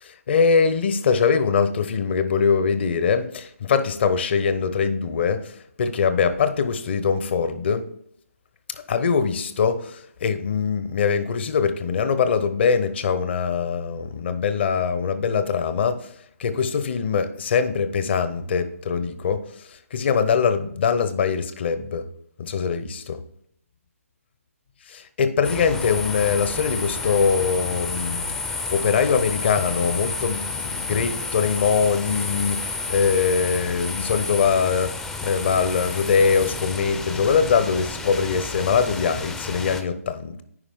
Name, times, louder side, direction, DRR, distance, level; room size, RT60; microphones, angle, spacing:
voice 1, 0.0-5.4 5.8-7.8 8.9-15.9 16.4-19.4 19.9-22.0 22.4-22.9 24.9-28.3 28.7-32.6 32.9-34.9 35.2-40.4, left 6 dB, 45° left, 11 dB, 0.9 m, -22 dB
sound 1, 25.4-39.8, left 3 dB, 5° left, 0.5 m, -31 dB
9.8 x 5.0 x 3.7 m, 0.68 s
figure-of-eight pair, 140°, 8 cm